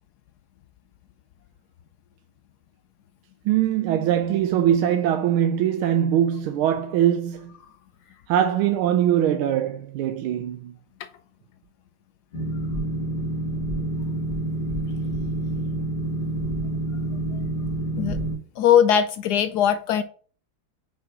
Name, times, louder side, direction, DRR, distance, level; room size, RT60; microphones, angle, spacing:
voice 1, 3.4-7.5 8.3-10.7, right 10 dB, 80° right, 1.5 m, -22 dB
Boat Water vehicle, 12.3-18.4, right 2 dB, 25° left, 1.6 m, -28 dB
voice 2, 18.6-20.0, left 9 dB, 75° left, 0.9 m, -19 dB
5.8 x 4.5 x 4.7 m
omnidirectional pair, 2.3 m